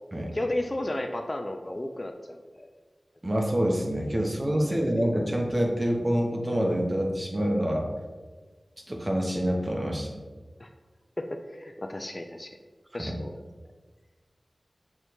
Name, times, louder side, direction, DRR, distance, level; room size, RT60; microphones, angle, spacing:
voice 1, 0.3-2.7 4.5-4.8 10.6-10.7 11.2-12.6 12.9-13.4, left 1 dB, 35° left, 5 dB, 0.4 m, -34 dB
voice 2, 3.2-7.9 8.9-10.1 13.0-13.1, equal, 25° right, 0 dB, 1.1 m, -26 dB
6.6 x 3.3 x 4.6 m, 1.4 s
wide cardioid pair, 60°, 0 cm